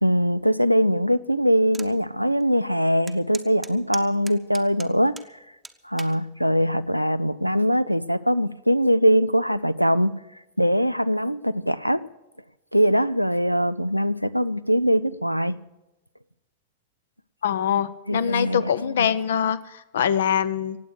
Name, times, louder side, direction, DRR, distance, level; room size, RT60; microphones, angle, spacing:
voice 1, 0.0-5.2 5.8-10.2 10.6-12.0 12.7-15.6 18.1-19.1, equal, 90° right, 15 dB, 0.4 m, -22 dB
sound 1, 1.7-1.9 2.4-2.5 3.1-5.3 5.6-6.2 6.9-7.2, right 4 dB, 10° right, 0.9 m, -39 dB
voice 2, 17.4-20.8, left 8 dB, 65° left, 14 dB, 0.7 m, -24 dB
17.5 x 8.2 x 8.1 m, 1.0 s
figure-of-eight pair, 90°, 0 cm